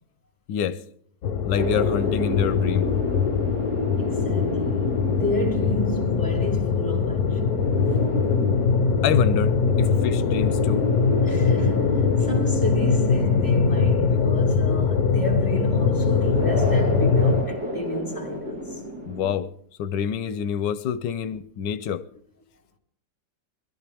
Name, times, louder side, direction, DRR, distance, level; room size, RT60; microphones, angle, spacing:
voice 1, 0.5-0.8 1.4-2.9 9.0-10.8 19.1-19.5 19.8-22.1, left 8 dB, 90° left, 1.4 m, -27 dB
sound 1, 1.2-17.4, left 5 dB, 65° left, 1.3 m, -22 dB
sound 2, 1.6-19.3, equal, 65° right, 2.9 m, -31 dB
voice 2, 4.0-7.7 11.2-18.8, left 1 dB, 10° left, 3.1 m, -32 dB
22.0 x 14.5 x 3.5 m
omnidirectional pair, 1.8 m